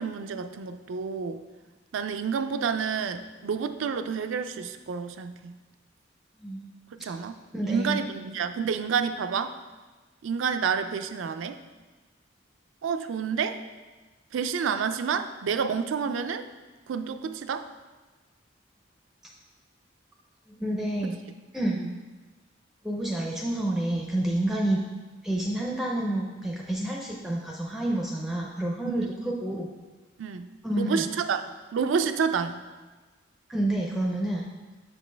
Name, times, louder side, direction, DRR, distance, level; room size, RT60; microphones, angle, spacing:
voice 1, 0.0-1.4 1.9-5.6 6.9-7.4 7.7-9.6 10.2-11.6 12.8-13.6 14.3-16.5 16.9-17.7 21.0-21.1 21.8-21.9 28.9-29.3 30.2-31.4 31.7-32.6, right 6 dB, 80° right, 9 dB, 0.4 m, -29 dB
voice 2, 7.5-8.0 20.6-21.2 21.5-21.8 22.8-24.8 25.2-29.7 30.6-31.0 33.5-34.4, right 1 dB, ahead, -2 dB, 0.5 m, -28 dB
6.9 x 5.1 x 3.3 m, 1.3 s
head